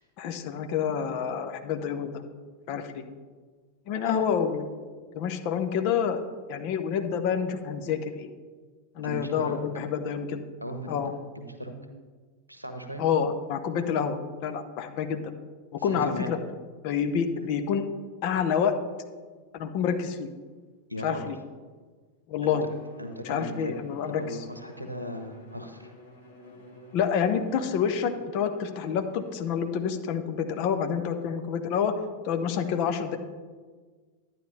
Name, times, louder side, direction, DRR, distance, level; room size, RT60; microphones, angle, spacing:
voice 1, 0.2-2.2 2.7-3.1 3.9-4.8 5.1-6.2 6.5-8.3 8.9-10.4 10.9-11.1 13.0-15.2 15.8-16.4 16.8-17.8 18.2-18.8 19.5-20.3 21.0-21.3 22.3-22.7 23.2-24.4 26.9-31.9 32.2-33.2, left 7 dB, 45° left, 7 dB, 0.9 m, -28 dB
voice 2, 9.0-9.6 10.6-11.0 11.3-11.8 12.5-13.0 15.8-16.3 20.9-21.2 22.4-22.6 23.0-23.7 24.2-25.9, equal, 90° right, 7 dB, 1.1 m, -37 dB
Bowed string instrument, 22.6-30.0, left 1 dB, 70° left, 1.9 m, -51 dB
11.5 x 9.4 x 3.3 m, 1.5 s
figure-of-eight pair, 90°, 0 cm